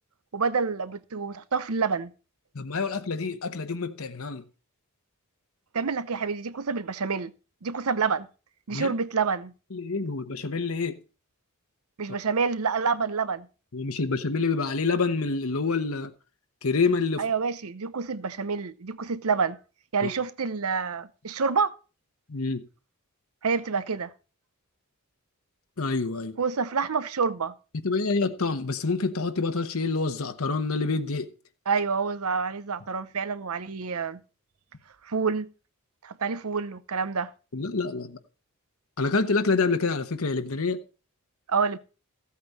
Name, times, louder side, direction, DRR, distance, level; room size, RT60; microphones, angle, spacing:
voice 1, 0.3-2.1 5.7-7.3 7.6-8.3 8.7-9.5 12.0-13.5 17.2-19.6 19.9-21.7 23.4-24.1 26.4-27.5 31.7-34.2 35.0-35.5 36.0-37.3 41.5-41.8, right 5 dB, 75° right, 0.8 m, -27 dB
voice 2, 2.5-4.4 8.7-8.9 9.7-11.0 13.7-16.1 16.6-17.2 20.0-20.1 22.3-22.7 25.8-26.4 27.7-31.3 37.5-38.2 39.0-40.8, left 4 dB, 70° left, 1.0 m, -27 dB
14.5 x 8.5 x 4.2 m
head